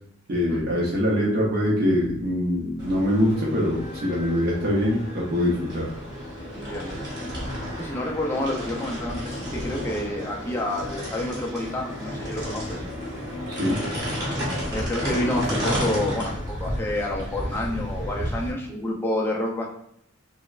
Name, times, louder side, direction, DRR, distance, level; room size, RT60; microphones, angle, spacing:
voice 1, 0.3-5.9 13.5-13.8, left 1 dB, 45° right, -4 dB, 0.6 m, -23 dB
sound 1, 2.8-18.5, equal, 20° right, 0.9 m, -32 dB
voice 2, 6.5-7.0 7.8-12.8 14.7-16.3 16.6-19.7, left 1 dB, 10° left, -2 dB, 0.3 m, -29 dB
3.0 x 2.1 x 2.3 m, 0.72 s
head